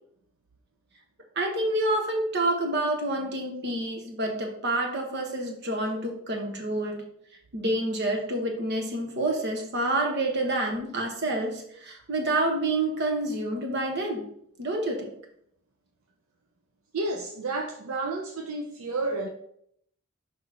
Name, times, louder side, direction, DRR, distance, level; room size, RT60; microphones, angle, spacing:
voice 1, 1.4-7.0 7.5-14.3 14.6-15.1, right 1 dB, 55° right, 2 dB, 1.2 m, -28 dB
voice 2, 16.9-19.3, right 2 dB, 75° right, 3 dB, 0.5 m, -31 dB
6.1 x 5.2 x 2.9 m, 0.70 s
head